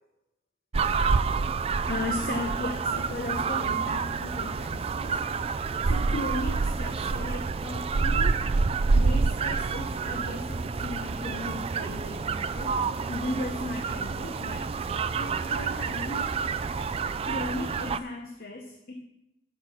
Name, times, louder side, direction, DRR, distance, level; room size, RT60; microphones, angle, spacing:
sound 1, 0.7-18.0, right 4 dB, 30° right, 0.3 m, -28 dB
voice 1, 1.9-5.3 5.8-8.5 8.9-12.8 13.1-14.7 15.1-16.4 17.2-19.0, left 2 dB, 50° left, 3 dB, 0.9 m, -36 dB
9.0 x 5.9 x 6.7 m, 0.91 s
head